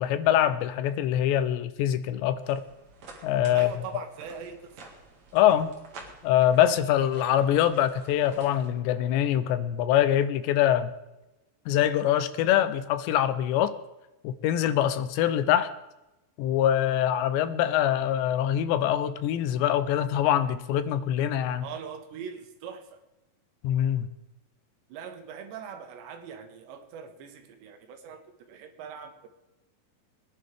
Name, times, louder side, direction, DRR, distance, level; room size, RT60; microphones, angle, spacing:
voice 1, 0.0-2.6 3.2-3.7 5.3-5.7 6.2-10.9 11.7-13.7 14.2-15.7 16.4-21.6 23.6-24.1, left 11 dB, 85° left, 2.9 m, -24 dB
sound 1, 2.4-8.7, right 3 dB, 50° right, 2.5 m, -49 dB
voice 2, 3.5-4.6 21.6-23.0 24.9-29.3, right 7 dB, 80° right, 3.5 m, -41 dB
23.0 x 10.5 x 3.4 m
omnidirectional pair, 5.0 m